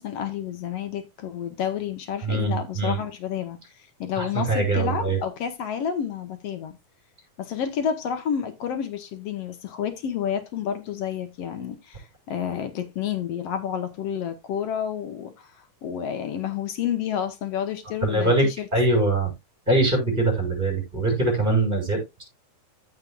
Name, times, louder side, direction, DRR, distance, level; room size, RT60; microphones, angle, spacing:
voice 1, 0.0-3.6 4.0-6.7 7.4-15.3 15.8-18.7, left 8 dB, 60° left, 2.1 m, -30 dB
voice 2, 2.2-3.0 4.2-5.2 18.0-19.3 19.7-22.2, right 2 dB, 15° right, 5.5 m, -23 dB
14.5 x 5.3 x 2.4 m
omnidirectional pair, 3.4 m